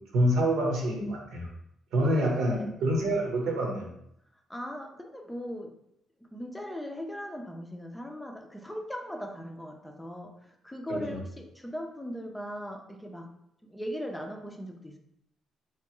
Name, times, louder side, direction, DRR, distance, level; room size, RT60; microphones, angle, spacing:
voice 1, 0.0-1.5 1.9-3.9 10.9-11.2, right 1 dB, 85° right, -1 dB, 0.9 m, -27 dB
voice 2, 4.5-5.7 6.3-13.3 13.6-15.0, equal, 5° left, 2 dB, 0.5 m, -39 dB
3.4 x 3.0 x 3.0 m, 0.76 s
cardioid pair, 90°, 0 cm